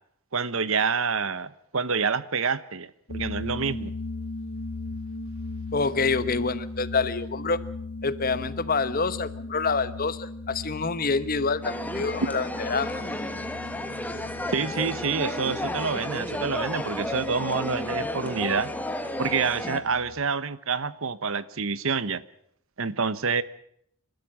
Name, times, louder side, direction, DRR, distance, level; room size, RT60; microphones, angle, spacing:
voice 1, 0.3-3.9 14.5-18.7 19.2-22.2 22.8-23.4, right 5 dB, 65° right, 1.0 m, -27 dB
sound 1, 3.1-20.2, left 3 dB, 85° left, 2.7 m, -38 dB
voice 2, 5.7-7.6 8.0-13.0, left 4 dB, 40° left, 1.1 m, -27 dB
sound 2, 11.6-19.8, left 1 dB, 5° left, 1.6 m, -32 dB
27.5 x 13.0 x 7.6 m
head